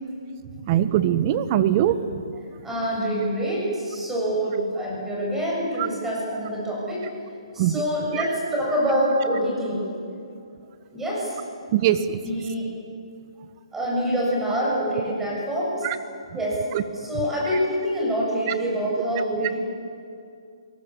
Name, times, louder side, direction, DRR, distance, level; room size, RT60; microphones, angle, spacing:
voice 1, 0.7-2.0 7.6-7.8 11.7-12.2 15.8-16.0 16.7-16.8, right 11 dB, 35° right, 13 dB, 1.1 m, -21 dB
voice 2, 2.6-7.1 7.5-9.8 10.9-11.4 12.2-12.7 13.7-15.8 16.3-16.6 16.9-19.6, equal, 10° right, -5 dB, 7.5 m, -26 dB
25.0 x 19.0 x 7.3 m, 2.4 s
hypercardioid pair, 150°, 3 cm